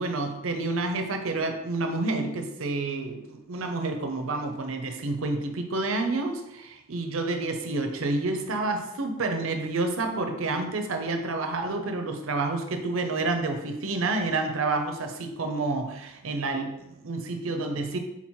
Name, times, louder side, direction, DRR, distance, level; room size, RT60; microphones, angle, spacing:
voice 1, 0.0-18.0, right 3 dB, 70° right, 5 dB, 0.6 m, -29 dB
4.1 x 2.9 x 4.3 m, 0.89 s
head